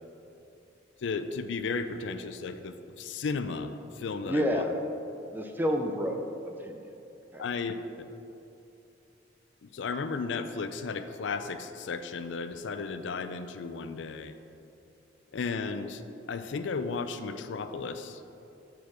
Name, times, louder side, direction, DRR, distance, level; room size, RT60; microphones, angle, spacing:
voice 1, 1.0-4.6 7.4-7.8 9.6-14.3 15.3-18.2, left 4 dB, 75° left, 10 dB, 0.4 m, -34 dB
voice 2, 4.3-4.9 5.3-6.8 7.3-7.4, equal, 10° right, 4 dB, 0.4 m, -30 dB
6.9 x 4.7 x 5.9 m, 2.8 s
head